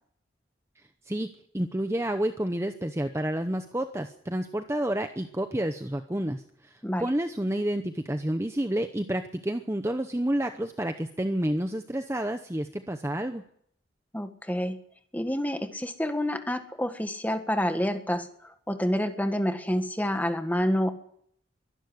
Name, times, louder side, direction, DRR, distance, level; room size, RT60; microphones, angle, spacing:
voice 1, 1.5-13.4, right 1 dB, 15° right, 7 dB, 0.8 m, -29 dB
voice 2, 14.1-14.8 15.1-20.9, equal, 10° left, 7 dB, 1.7 m, -28 dB
23.0 x 11.5 x 9.5 m, 0.68 s
head